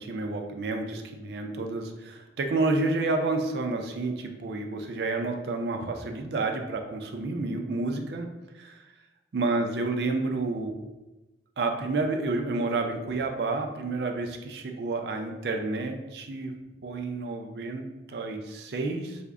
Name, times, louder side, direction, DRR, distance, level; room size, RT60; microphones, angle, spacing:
voice 1, 0.0-8.3 8.5-8.8 9.3-10.7 11.6-16.5 16.8-19.2, right 3 dB, 65° right, 4 dB, 0.4 m, -30 dB
3.5 x 2.1 x 3.5 m, 1.1 s
head